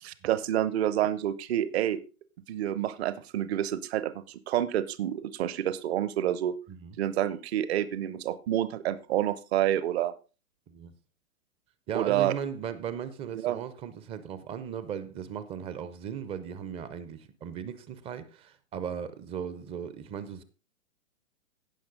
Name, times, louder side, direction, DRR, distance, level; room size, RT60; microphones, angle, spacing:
voice 1, 0.0-2.0 2.5-6.6 7.0-10.1 11.9-12.3 13.3-13.6, right 11 dB, 45° right, 1.0 m, -28 dB
voice 2, 11.9-20.4, right 8 dB, 15° right, 0.6 m, -37 dB
16.5 x 5.8 x 3.9 m
hypercardioid pair, 125°, 43 cm